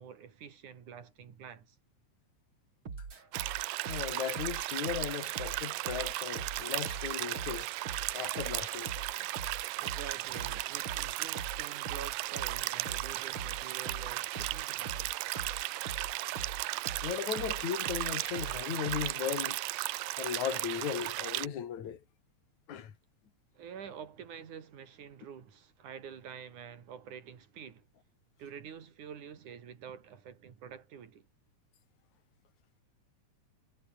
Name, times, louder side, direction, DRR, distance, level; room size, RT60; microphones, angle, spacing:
voice 1, 0.0-1.8 9.8-15.1 23.5-27.8 28.4-31.3, right 7 dB, 65° right, 4.2 m, -47 dB
sound 1, 2.9-19.2, right 5 dB, 40° right, 3.9 m, -43 dB
sound 2, 3.3-21.5, right 19 dB, 90° right, 2.3 m, -36 dB
voice 2, 3.9-7.7 8.1-8.9 17.0-19.6 20.2-22.0 22.7-22.9, left 9 dB, 65° left, 3.7 m, -36 dB
omnidirectional pair, 3.7 m